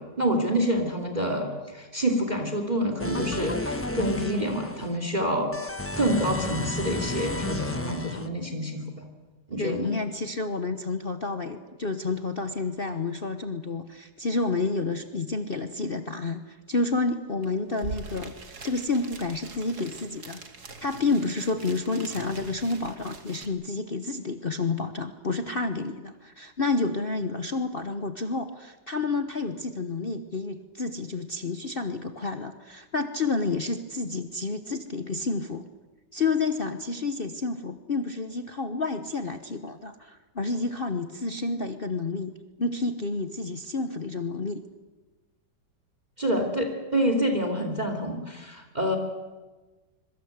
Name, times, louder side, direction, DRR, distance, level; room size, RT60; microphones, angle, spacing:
voice 1, 0.0-5.5 6.0-9.1 9.5-9.9 46.2-49.0, equal, 25° right, 5 dB, 2.7 m, -27 dB
sound 1, 3.0-5.0 5.5-8.3, left 2 dB, 10° left, 0.8 m, -32 dB
voice 2, 9.6-18.3 18.6-20.4 20.8-35.6 36.1-42.3 42.6-44.6, left 3 dB, 40° left, 8 dB, 1.0 m, -30 dB
sound 2, 17.4-17.5 17.7-23.5, right 3 dB, 60° right, 2.6 m, -43 dB
25.5 x 23.0 x 8.0 m, 1.2 s
omnidirectional pair, 1.9 m